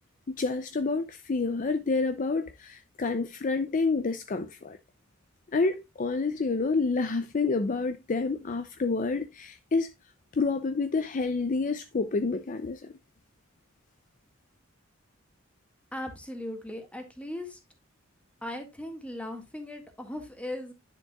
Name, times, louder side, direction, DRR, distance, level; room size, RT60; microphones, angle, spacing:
voice 1, 0.3-4.8 5.5-9.9 10.3-12.9, left 3 dB, 40° left, 0.5 m, -28 dB
voice 2, 15.9-17.6 18.4-20.7, left 1 dB, 5° left, 1.8 m, -38 dB
10.0 x 6.6 x 2.3 m
head